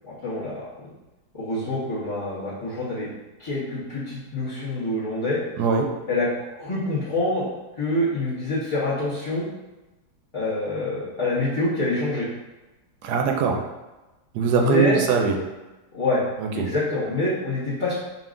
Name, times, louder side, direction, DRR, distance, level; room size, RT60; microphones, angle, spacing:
voice 1, 0.0-0.7 1.3-3.1 3.4-5.4 6.1-6.3 6.6-7.5 7.8-9.5 10.3-12.3 14.5-15.0 15.9-16.2 16.5-17.9, left 2 dB, 25° left, -13 dB, 0.8 m, -26 dB
voice 2, 5.6-5.9 13.0-13.6 14.3-15.3 16.4-16.7, right 5 dB, 80° right, 2 dB, 1.1 m, -22 dB
5.1 x 2.7 x 2.5 m, 1.1 s
omnidirectional pair, 1.8 m